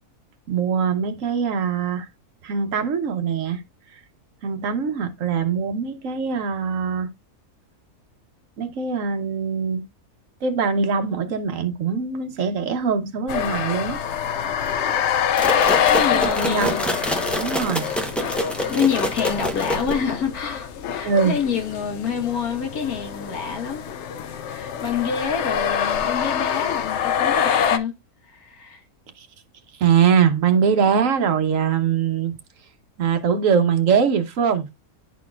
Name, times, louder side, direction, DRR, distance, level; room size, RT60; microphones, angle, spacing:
voice 1, 0.5-2.1 2.4-3.6 3.9-4.0 4.4-7.1 8.6-9.8 10.4-14.0 16.1-17.0 17.4-17.9 21.0-21.3 29.2-29.3 29.7-32.4 33.0-34.7, right 6 dB, 65° right, 1.2 m, -22 dB
sound 1, 13.3-27.8, left 8 dB, 60° left, 0.8 m, -25 dB
sound 2, 15.4-20.2, equal, ahead, 0.5 m, -27 dB
voice 2, 15.9-16.8 18.7-23.9 24.5-27.9 28.3-28.8, left 6 dB, 80° left, 1.8 m, -27 dB
11.5 x 4.2 x 2.3 m
omnidirectional pair, 1.6 m